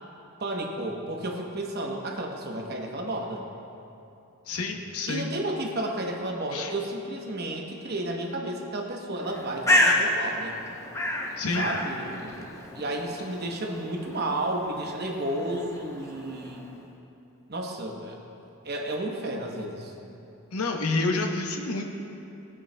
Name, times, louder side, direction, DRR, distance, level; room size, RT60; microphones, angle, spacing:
voice 1, 0.4-3.4 5.1-10.6 11.6-12.5 12.7-16.7 17.5-18.2 18.6-19.9, right 1 dB, 45° right, 1 dB, 0.9 m, -32 dB
voice 2, 4.5-5.3 6.5-6.7 11.4-11.7 20.5-21.8, left 3 dB, 80° left, 2 dB, 0.9 m, -28 dB
Bird, 9.2-16.8, left 1 dB, 15° left, 0.6 m, -29 dB
16.5 x 8.5 x 2.2 m, 2.7 s
head